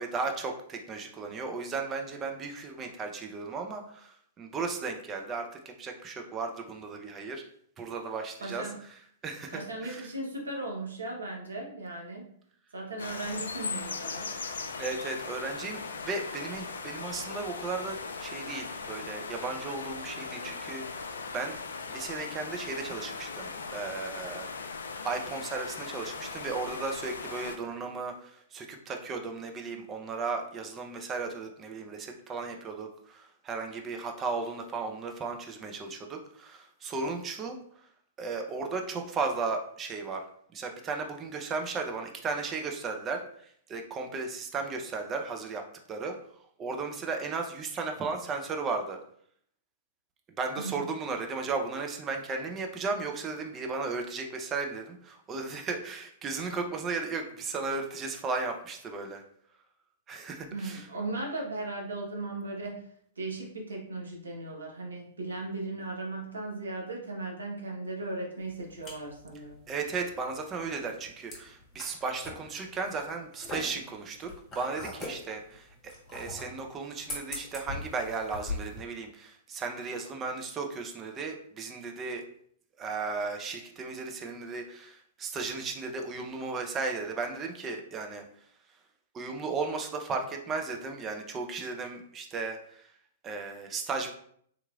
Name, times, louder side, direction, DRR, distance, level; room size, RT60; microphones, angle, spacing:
voice 1, 0.0-5.5 5.8-7.4 7.8-8.7 9.2-10.1 14.8-20.8 21.3-21.6 21.9-24.5 25.0-37.6 38.2-40.3 40.5-45.6 45.9-46.1 46.6-49.0 50.4-59.2 60.1-60.9 69.7-75.7 76.1-82.2 82.8-88.2 89.1-92.9 93.2-94.1, right 4 dB, 25° right, 4 dB, 0.5 m, -35 dB
voice 2, 8.4-8.8 9.5-12.3 12.7-14.5 50.6-50.9 60.5-62.8 63.2-69.6, right 2 dB, 80° right, -1 dB, 0.9 m, -37 dB
sound 1, 13.0-27.6, left 4 dB, 70° left, 0.3 m, -39 dB
sound 2, 68.4-78.8, left 2 dB, 20° left, 1.1 m, -42 dB
3.6 x 3.0 x 2.3 m, 0.64 s
figure-of-eight pair, 105°, 0 cm